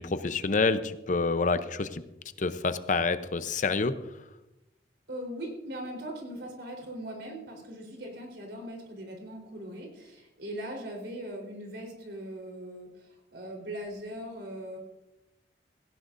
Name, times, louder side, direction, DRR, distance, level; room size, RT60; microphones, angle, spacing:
voice 1, 0.0-2.0 2.4-4.0, left 4 dB, 45° left, 11 dB, 0.7 m, -27 dB
voice 2, 5.1-14.8, right 1 dB, 75° right, 1 dB, 3.9 m, -40 dB
17.5 x 16.0 x 2.6 m, 0.94 s
head